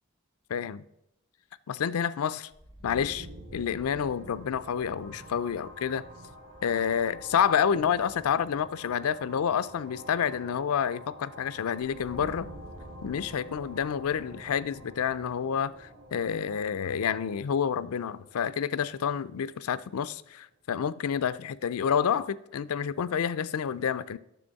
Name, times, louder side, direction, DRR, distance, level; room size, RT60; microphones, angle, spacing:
voice 1, 0.5-0.8 1.7-2.5 2.8-3.3 3.5-6.0 6.6-12.5 13.0-24.2, left 7 dB, 85° left, 0.4 m, -29 dB
sound 1, 2.5-20.2, equal, 70° right, 2.6 m, -48 dB
9.9 x 6.9 x 4.0 m
head